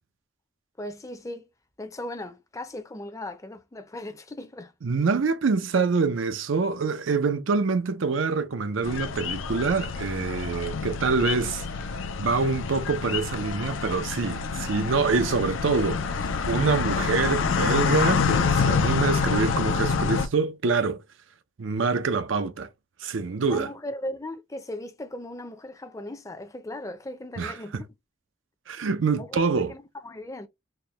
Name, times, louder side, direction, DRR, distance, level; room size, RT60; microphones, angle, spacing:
voice 1, 0.8-1.5 1.8-4.7 23.4-27.8 28.7-28.8 29.2-30.5, left 1 dB, 15° left, 0.5 m, -38 dB
voice 2, 4.8-11.6 12.2-21.0 21.6-22.7 23.0-23.7 27.4-27.8 28.7-29.7, right 4 dB, 85° right, 0.5 m, -25 dB
sound 1, 8.8-20.3, left 5 dB, 85° left, 0.5 m, -27 dB
4.3 x 2.1 x 3.1 m
head